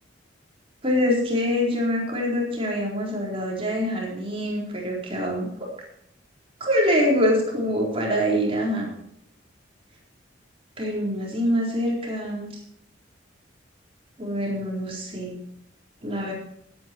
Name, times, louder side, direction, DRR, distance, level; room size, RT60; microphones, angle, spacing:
voice 1, 0.8-5.7 6.6-8.9 10.8-12.5 14.2-15.4 16.0-16.3, equal, 30° right, -2 dB, 4.2 m, -25 dB
16.5 x 9.4 x 4.6 m, 0.74 s
head